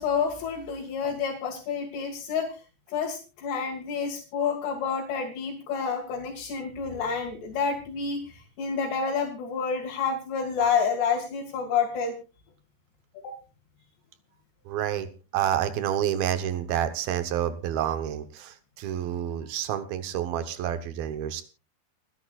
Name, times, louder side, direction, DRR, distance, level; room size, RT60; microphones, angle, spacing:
voice 1, 0.0-2.6 2.9-12.1 13.2-13.4, left 6 dB, 85° left, -1 dB, 4.3 m, -29 dB
voice 2, 14.7-15.1 15.3-21.4, right 10 dB, 70° right, 10 dB, 2.7 m, -29 dB
29.0 x 10.5 x 2.4 m, 0.32 s
omnidirectional pair, 4.7 m